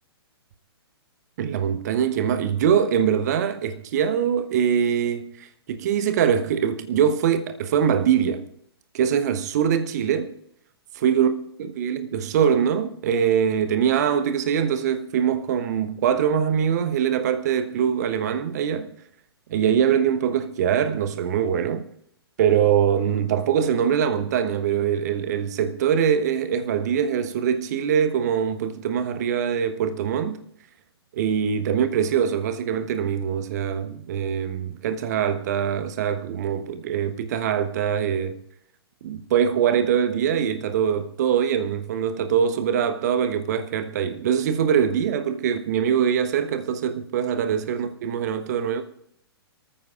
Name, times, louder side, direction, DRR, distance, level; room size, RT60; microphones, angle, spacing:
voice 1, 1.4-8.5 8.9-10.4 10.9-18.9 19.5-21.9 22.4-30.4 31.1-38.4 39.0-48.8, right 8 dB, 40° right, 1.2 m, -23 dB
25.0 x 14.0 x 2.5 m
figure-of-eight pair, 120°, 13 cm